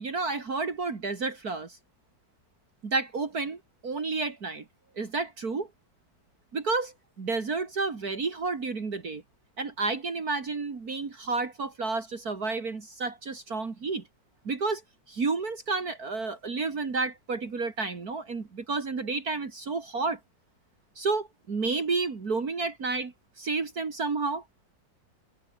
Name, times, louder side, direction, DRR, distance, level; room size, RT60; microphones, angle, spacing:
voice 1, 0.0-1.8 2.8-4.6 5.0-5.7 6.5-9.2 9.6-14.0 14.4-14.8 15.1-20.2 21.0-24.4, right 4 dB, 55° right, 2.9 m, -31 dB
omnidirectional pair, 2.0 m